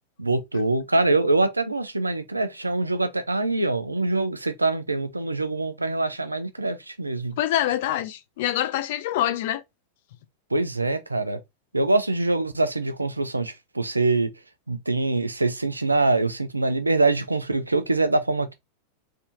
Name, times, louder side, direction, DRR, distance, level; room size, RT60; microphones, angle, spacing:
voice 1, 0.2-7.4 10.5-11.4 11.7-14.3 14.7-18.5, right 2 dB, 80° right, 0.4 m, -24 dB
voice 2, 7.4-9.6, left 13 dB, 50° left, 0.5 m, -25 dB
3.3 x 2.7 x 2.6 m
figure-of-eight pair, 90°, 0 cm